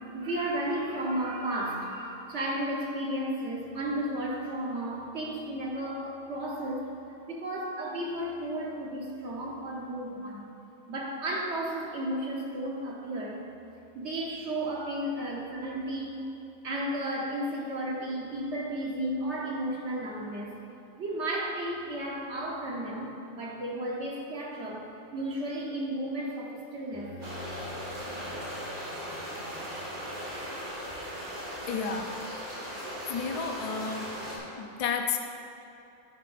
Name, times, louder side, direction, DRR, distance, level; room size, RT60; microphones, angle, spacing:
voice 1, 0.0-6.9 7.3-10.5 10.9-13.4 13.9-16.3 16.6-20.6 21.0-27.1 29.3-29.5, right 1 dB, 55° right, -2 dB, 1.3 m, -33 dB
Bowed string instrument, 26.9-31.7, left 3 dB, 20° right, 1.7 m, -48 dB
sound 1, 27.2-34.4, equal, 85° right, 2.7 m, -38 dB
voice 2, 31.7-32.1 33.1-34.3 34.6-35.2, left 6 dB, 55° left, 4 dB, 0.4 m, -32 dB
10.0 x 9.5 x 2.6 m, 2.8 s
omnidirectional pair, 1.5 m